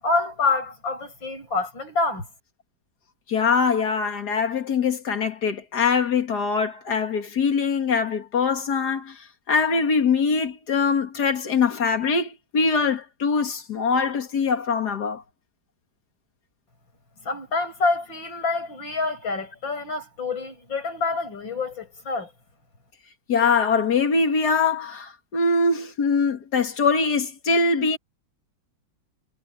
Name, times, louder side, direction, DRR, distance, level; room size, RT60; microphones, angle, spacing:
voice 1, 0.0-2.3 17.2-22.3, left 3 dB, 90° left, 8.3 m, -27 dB
voice 2, 3.3-15.2 23.3-28.0, left 5 dB, 60° left, 2.5 m, -23 dB
omnidirectional pair, 2.0 m